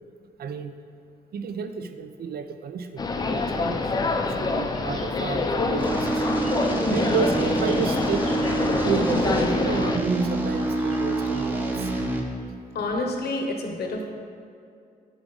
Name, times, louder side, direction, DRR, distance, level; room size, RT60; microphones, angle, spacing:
voice 1, 0.4-0.7 1.3-6.3 6.9-8.3 8.8-11.9, right 6 dB, 70° right, 9 dB, 0.5 m, -31 dB
sound 1, 3.0-10.0, left 3 dB, 25° left, 0.4 m, -26 dB
sound 2, 4.7-12.0, right 1 dB, 45° right, 1.9 m, -48 dB
sound 3, 5.8-12.2, right 2 dB, 10° right, 0.7 m, -26 dB
voice 2, 12.7-14.1, left 2 dB, 75° left, 2 dB, 0.9 m, -29 dB
11.0 x 4.9 x 3.9 m, 2.5 s
wide cardioid pair, 180°, 17 cm